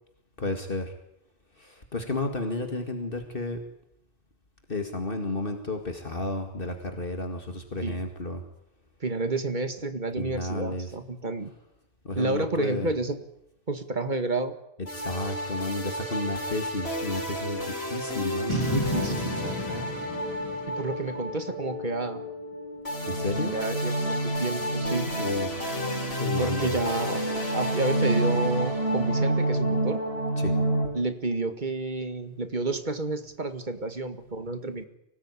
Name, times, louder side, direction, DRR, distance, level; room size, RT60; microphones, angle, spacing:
voice 1, 0.4-0.9 1.6-3.6 4.7-8.4 10.2-10.9 12.0-12.9 14.9-19.4 19.7-19.9 23.1-23.5 25.2-26.8 30.4-30.5, left 2 dB, 60° left, 5 dB, 2.4 m, -32 dB
voice 2, 9.0-11.5 12.2-13.2 13.7-14.6 18.7-19.3 20.7-22.2 23.5-25.3 26.4-27.2 27.5-30.0 30.9-34.9, right 2 dB, 45° right, 9 dB, 2.1 m, -30 dB
sound 1, 14.9-30.9, right 1 dB, 75° left, 5.5 m, -29 dB
Boom, 18.5-21.8, equal, 25° left, 3.6 m, -32 dB
25.0 x 19.0 x 9.8 m, 0.81 s
omnidirectional pair, 1.1 m